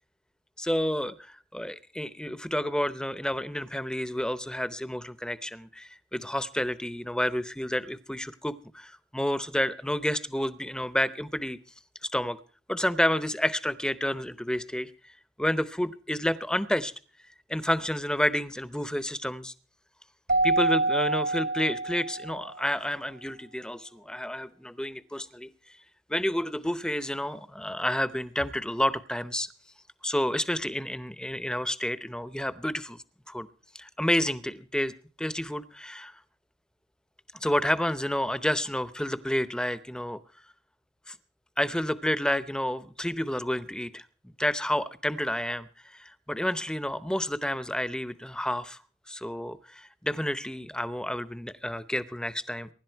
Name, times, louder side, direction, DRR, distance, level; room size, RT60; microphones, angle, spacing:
voice 1, 0.6-11.6 12.0-12.4 12.7-14.9 15.4-16.9 17.5-19.5 20.4-25.5 26.1-29.5 30.0-33.0 33.3-33.5 33.7-34.9 35.2-36.1 37.3-40.2 41.1-41.2 41.6-48.8 49.1-52.7, left 1 dB, 5° left, 14 dB, 0.7 m, -30 dB
Keyboard (musical), 20.3-22.6, right 2 dB, 75° right, 2.2 m, -26 dB
24.0 x 11.5 x 4.6 m, 0.39 s
head